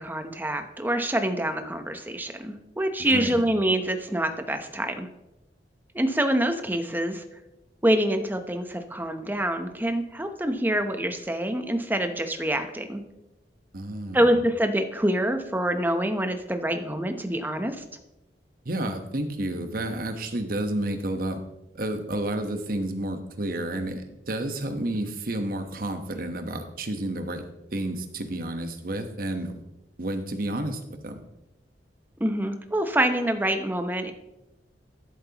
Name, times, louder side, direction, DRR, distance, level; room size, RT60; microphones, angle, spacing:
voice 1, 0.0-5.1 5.9-7.2 7.8-13.0 14.1-17.8 32.2-34.1, right 1 dB, 10° right, 7 dB, 0.8 m, -26 dB
voice 2, 3.0-3.4 13.7-14.4 18.6-21.4 21.7-29.5 30.0-31.2, right 1 dB, 55° right, 6 dB, 1.1 m, -31 dB
12.0 x 11.0 x 2.9 m, 0.93 s
head